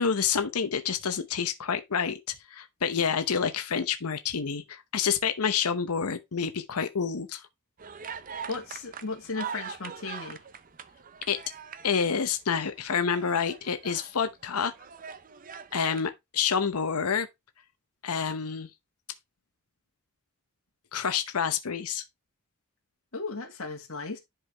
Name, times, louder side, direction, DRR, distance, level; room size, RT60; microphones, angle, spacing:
voice 1, 0.0-2.2 2.5-7.4 11.3-11.4 11.8-14.7 15.7-17.3 18.0-18.7 20.9-22.0, left 6 dB, 85° left, 0.8 m, -28 dB
sound 1, 7.8-12.3 12.8-14.1 14.6-16.1, right 7 dB, 40° right, 0.6 m, -42 dB
voice 2, 8.5-10.4 23.1-24.2, left 3 dB, 65° left, 2.0 m, -35 dB
11.0 x 4.7 x 3.4 m
head